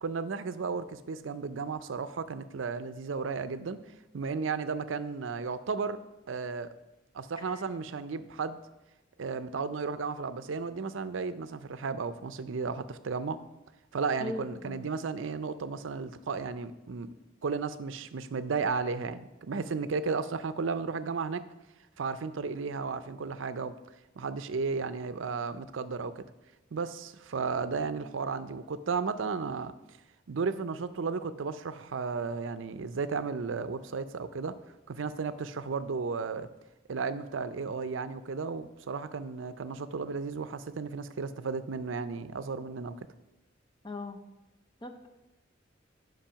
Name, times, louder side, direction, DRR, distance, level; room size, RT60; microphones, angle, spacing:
voice 1, 0.0-3.8 4.1-6.0 6.3-6.7 7.1-8.6 9.2-13.4 13.9-17.1 17.4-21.5 22.0-23.7 24.2-26.2 26.7-29.7 30.3-34.6 34.9-36.5 36.9-43.0, right 4 dB, 85° right, 13 dB, 0.5 m, -34 dB
voice 2, 14.2-14.9 43.8-44.2 44.8-45.1, left 2 dB, 25° left, 5 dB, 0.7 m, -39 dB
8.9 x 5.3 x 5.7 m, 1.0 s
head